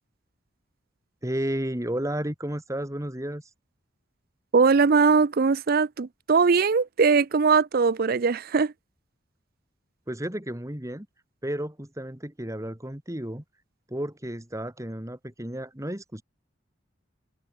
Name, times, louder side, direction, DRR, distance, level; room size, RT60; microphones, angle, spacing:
voice 1, 1.2-3.5 10.1-11.1 11.4-13.4 13.9-16.2, right 1 dB, 15° right, 2.2 m, -32 dB
voice 2, 4.5-8.7, right 5 dB, 50° right, 0.5 m, -21 dB
head